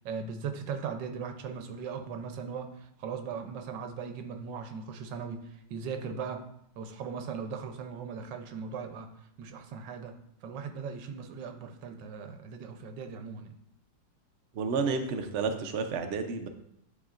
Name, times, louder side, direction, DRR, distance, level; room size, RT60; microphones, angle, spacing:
voice 1, 0.0-6.4 6.8-9.1 9.4-10.1 10.4-13.5, right 6 dB, 90° right, 7 dB, 1.4 m, -38 dB
voice 2, 14.6-16.5, right 4 dB, 65° right, 6 dB, 0.7 m, -31 dB
10.5 x 4.3 x 2.5 m, 0.74 s
omnidirectional pair, 1.9 m